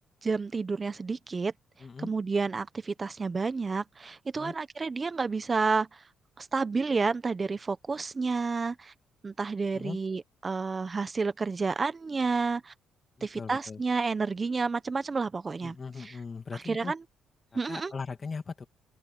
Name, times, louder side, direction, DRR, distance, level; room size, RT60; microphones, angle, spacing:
voice 1, 0.2-1.5 2.0-6.0 6.4-8.9 9.2-12.7 13.2-15.7 16.7-17.0 17.5-17.9, right 4 dB, 30° right, 1.1 m, -30 dB
voice 2, 1.8-2.1 4.3-4.5 9.7-10.0 13.2-13.8 15.6-16.9 17.7-18.7, left 5 dB, 35° left, 2.3 m, -39 dB
open air
cardioid pair, 90°, 0 cm